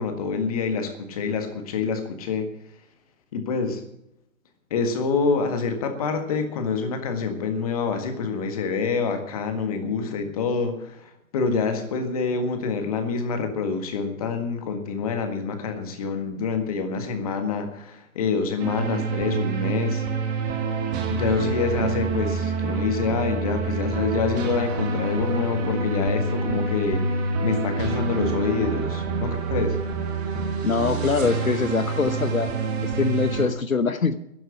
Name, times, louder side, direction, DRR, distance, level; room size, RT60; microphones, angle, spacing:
voice 1, 0.0-2.4 3.3-3.8 4.7-10.7 11.3-20.0 21.1-29.8, left 5 dB, 25° left, 7 dB, 1.7 m, -26 dB
sound 1, 18.6-33.5, right 4 dB, 10° right, 1.0 m, -27 dB
voice 2, 30.6-32.5 32.8-34.2, left 5 dB, 70° left, 12 dB, 1.0 m, -23 dB
11.5 x 10.5 x 8.4 m, 0.83 s
figure-of-eight pair, 140°, 43 cm